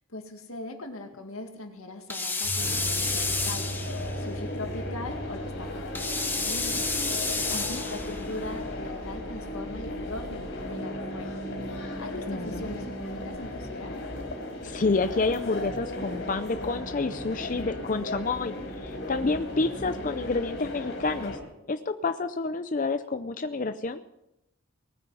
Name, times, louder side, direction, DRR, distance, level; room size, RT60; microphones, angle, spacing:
voice 1, 0.1-6.9 7.5-11.3 12.0-13.9, left 2 dB, 85° left, 4 dB, 2.1 m, -40 dB
sound 1, 2.1-4.2 5.9-8.2, left 3 dB, 10° left, 1.1 m, -30 dB
sound 2, 2.4-13.3, right 1 dB, 20° right, 1.4 m, -40 dB
sound 3, 2.6-21.4, left 1 dB, 55° left, 4.1 m, -36 dB
voice 2, 7.5-7.8 12.3-12.6 14.6-18.5 18.8-21.4 21.7-24.0, left 3 dB, 40° left, 10 dB, 0.5 m, -29 dB
19.0 x 9.5 x 5.6 m, 0.87 s
head